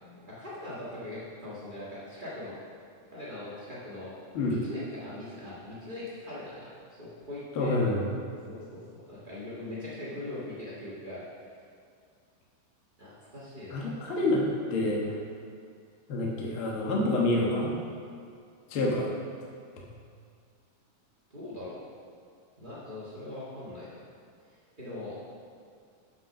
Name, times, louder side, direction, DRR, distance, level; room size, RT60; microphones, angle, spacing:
voice 1, 0.0-2.6 3.1-4.1 4.4-6.7 7.0-7.7 8.5-11.3 13.0-13.9 21.3-21.8 22.6-24.0 24.8-25.1, left 1 dB, 85° right, -9 dB, 0.4 m, -41 dB
voice 2, 7.5-8.2 13.7-14.4 14.7-15.2 16.1-17.7 18.7-19.1, left 2 dB, 55° left, -3 dB, 1.6 m, -27 dB
7.0 x 6.9 x 5.9 m, 2.2 s
omnidirectional pair, 3.8 m